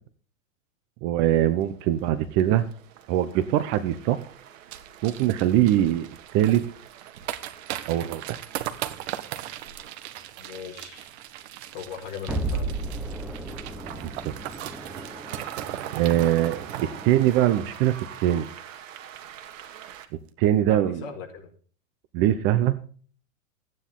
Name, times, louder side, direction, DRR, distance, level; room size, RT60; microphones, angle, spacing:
voice 1, 1.0-2.7 3.1-4.2 5.0-6.6 7.9-8.4 14.0-14.3 15.9-16.6 17.0-18.5 20.4-21.0 22.1-22.8, right 12 dB, 35° right, 12 dB, 0.9 m, -22 dB
sound 1, 1.3-20.1, right 10 dB, 70° right, 2.3 m, -46 dB
sound 2, 4.7-18.5 18.8-18.9 19.1-19.5 19.8-20.0, right 12 dB, 55° right, 1.5 m, -38 dB
voice 2, 10.4-11.1 11.7-12.7 20.6-21.5, left 7 dB, 35° left, 2 dB, 4.8 m, -39 dB
sound 3, 12.3-17.4, right 2 dB, 5° right, 1.0 m, -34 dB
15.0 x 10.0 x 3.7 m, 0.43 s
supercardioid pair, 150°, 40 cm